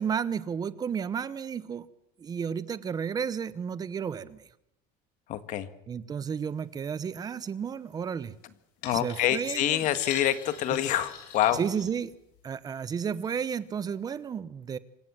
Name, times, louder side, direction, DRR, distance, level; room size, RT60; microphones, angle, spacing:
voice 1, 0.0-1.9 2.2-4.5 5.9-8.3 9.0-9.8 11.6-12.1 12.4-14.8, right 7 dB, 20° right, 17 dB, 0.9 m, -32 dB
voice 2, 5.3-5.7 8.8-11.6, left 12 dB, 50° left, 12 dB, 1.7 m, -26 dB
sound 1, 8.8-12.4 13.0-13.3 13.8-13.9, left 7 dB, 75° left, 7.8 m, -44 dB
26.5 x 15.5 x 7.4 m, 0.81 s
cardioid pair, 165°, 17 cm